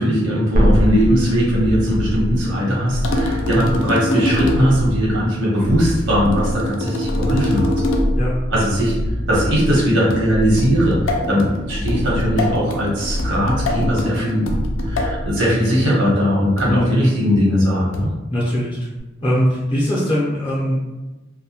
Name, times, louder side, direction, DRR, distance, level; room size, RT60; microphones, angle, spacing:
voice 1, 0.0-7.7 8.5-9.0 9.3-18.1, equal, 85° right, -5 dB, 0.9 m, -19 dB
sound 1, 0.5-15.8 19.0-19.1, equal, 40° right, 0.4 m, -24 dB
sound 2, 3.0-4.8 6.3-8.3 10.1-15.2 16.6-16.9 17.9-18.3, left 1 dB, 90° left, 0.4 m, -25 dB
voice 2, 16.7-17.0 18.3-18.9 19.2-20.8, equal, 25° left, -7 dB, 0.5 m, -20 dB
2.1 x 2.1 x 2.8 m, 1.1 s
head